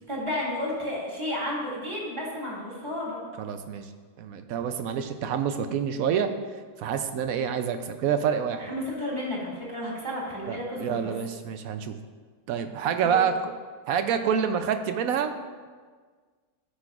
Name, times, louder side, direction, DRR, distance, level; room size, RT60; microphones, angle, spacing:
voice 1, 0.1-3.2 8.6-11.1, left 1 dB, 15° right, -6 dB, 2.2 m, -32 dB
voice 2, 3.4-3.9 4.2-6.3 6.8-8.7 10.5-12.0 12.5-13.5 13.9-15.3, right 7 dB, 75° right, 8 dB, 0.8 m, -27 dB
14.0 x 6.3 x 2.4 m, 1.5 s
omnidirectional pair, 1.9 m